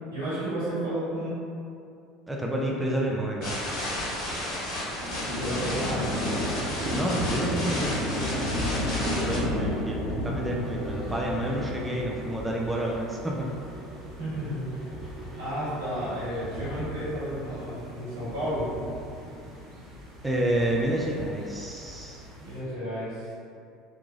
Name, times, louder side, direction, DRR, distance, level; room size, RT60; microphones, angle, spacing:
voice 1, 0.1-1.3 5.3-6.2 14.2-14.6 15.4-18.7 22.4-23.3, equal, 85° right, -12 dB, 1.4 m, -32 dB
voice 2, 2.3-3.5 6.9-7.9 8.6-8.8 9.1-13.3 20.2-22.3, right 1 dB, 10° right, -2 dB, 0.4 m, -29 dB
sound 1, 3.4-9.4, left 1 dB, 70° left, 1.4 m, -32 dB
sound 2, 5.0-22.6, equal, 55° right, 0.7 m, -34 dB
Mechanisms, 9.0-18.0, right 2 dB, 30° left, 0.9 m, -46 dB
3.1 x 2.3 x 2.3 m, 2.5 s
hypercardioid pair, 75°, 0 cm